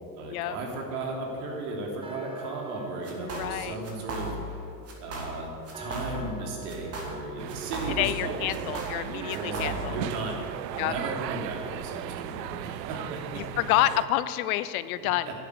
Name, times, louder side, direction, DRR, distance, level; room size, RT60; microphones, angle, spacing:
voice 1, 0.2-4.7 5.0-8.7 9.3-10.4 10.7-13.6 15.2-15.3, right 2 dB, 65° right, 0 dB, 3.3 m, -35 dB
sound 1, 0.7-11.9, right 4 dB, 10° right, 0.8 m, -47 dB
sound 2, 3.0-3.6 3.8-4.6 4.9-5.4 5.7-6.4 6.7-8.2 8.5-10.0, right 1 dB, 30° right, 2.6 m, -36 dB
voice 2, 3.2-3.8 8.0-10.0 10.8-10.9 13.3-15.3, left 15 dB, 60° left, 15 dB, 0.7 m, -28 dB
sound 3, 7.4-14.1, right 12 dB, 90° right, 0.6 m, -36 dB
10.5 x 8.1 x 8.8 m, 2.8 s
hypercardioid pair, 110°, 49 cm